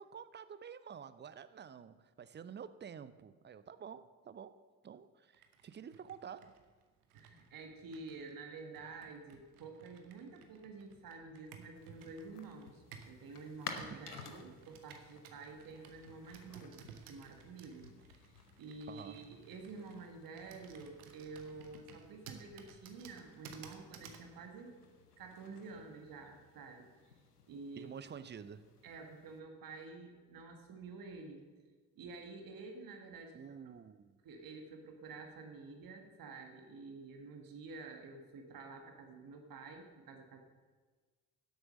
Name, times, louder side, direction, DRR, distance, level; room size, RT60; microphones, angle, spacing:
voice 1, 0.0-4.6 4.8-6.5 13.9-14.2 18.9-19.3 27.8-28.7 33.3-34.2, right 7 dB, 25° right, 14 dB, 0.6 m, -50 dB
Computer keyboard, 5.3-13.2 13.8-24.3, right 6 dB, 75° right, 1.0 m, -57 dB
voice 2, 7.1-17.9 18.6-24.7 25.2-26.9 27.5-27.9 28.8-31.5 31.9-33.4 33.6-33.7 34.2-40.4, right 4 dB, 50° right, 4 dB, 1.6 m, -50 dB
sound 1, 11.7-29.4, left 5 dB, 90° left, 0.7 m, -55 dB
12.0 x 8.0 x 5.3 m, 1.4 s
figure-of-eight pair, 45°, 45 cm